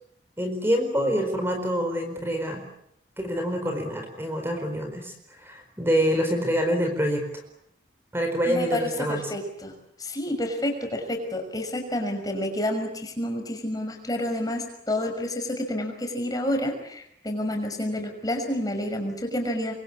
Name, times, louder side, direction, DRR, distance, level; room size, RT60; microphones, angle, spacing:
voice 1, 0.4-2.6 3.2-7.2 8.1-9.3, equal, 15° right, 5 dB, 4.5 m, -26 dB
voice 2, 8.5-19.7, left 1 dB, 20° left, 4 dB, 5.8 m, -29 dB
27.5 x 24.0 x 8.6 m, 0.74 s
head